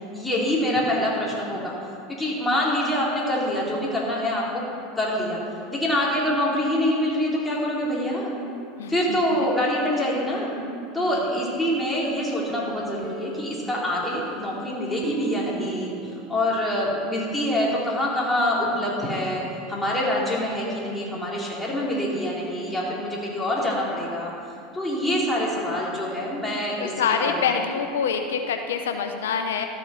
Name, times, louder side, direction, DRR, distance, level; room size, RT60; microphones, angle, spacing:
voice 1, 0.1-1.7 2.1-4.6 5.0-5.4 5.7-8.3 8.9-10.5 10.9-15.9 16.3-19.4 19.7-24.3 24.7-26.9 27.2-27.6, left 1 dB, 10° left, -5 dB, 3.1 m, -25 dB
voice 2, 8.8-9.2 9.6-10.0 11.0-11.2 26.8-29.7, left 6 dB, 85° left, 5 dB, 0.7 m, -26 dB
sound 1, 12.0-16.7, right 4 dB, 15° right, 1.2 m, -39 dB
13.0 x 7.1 x 5.7 m, 2.5 s
hypercardioid pair, 105°, 0 cm